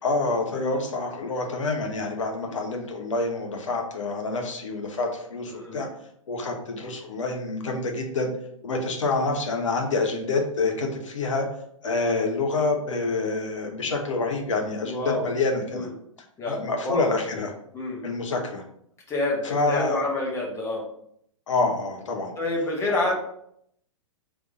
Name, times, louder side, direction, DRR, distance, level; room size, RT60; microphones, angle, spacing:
voice 1, 0.0-5.9 6.3-8.3 8.6-11.5 11.8-15.9 16.5-17.5 18.0-18.6 19.4-20.0 21.5-22.3 22.9-23.1, left 3 dB, 65° left, 3 dB, 0.9 m, -27 dB
voice 2, 5.5-5.8 14.8-15.3 15.7-15.9 16.4-16.6 16.8-17.1 17.7-18.1 19.1-20.8 22.4-23.1, left 2 dB, 15° left, -3 dB, 1.2 m, -28 dB
3.4 x 3.4 x 3.9 m, 0.71 s
figure-of-eight pair, 110°, 17 cm